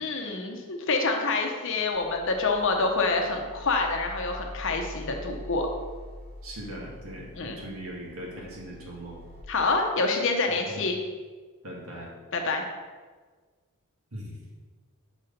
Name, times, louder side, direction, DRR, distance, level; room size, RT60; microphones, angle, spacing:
voice 1, 0.0-5.7 7.4-7.6 9.5-11.0 12.3-12.6, left 3 dB, 60° left, 3 dB, 0.9 m, -27 dB
sound 1, 1.9-9.4, left 1 dB, 25° left, 1.5 m, -44 dB
voice 2, 6.4-9.2 10.5-10.8 11.6-12.1 14.1-14.4, right 1 dB, 70° right, -3 dB, 1.8 m, -40 dB
6.1 x 4.3 x 5.3 m, 1.4 s
head